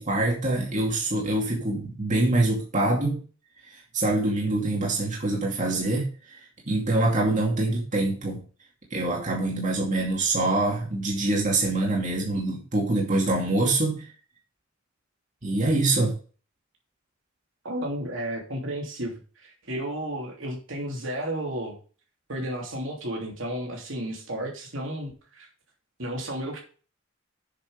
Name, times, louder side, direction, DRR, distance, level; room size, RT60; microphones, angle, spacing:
voice 1, 0.0-3.2 3.7-6.4 6.7-8.4 8.9-14.1 15.4-16.1, right 2 dB, 40° right, -2 dB, 2.3 m, -25 dB
voice 2, 17.6-21.8 22.3-25.5 26.0-26.6, right 1 dB, 70° right, 0 dB, 3.0 m, -33 dB
7.5 x 6.4 x 5.1 m, 0.38 s
head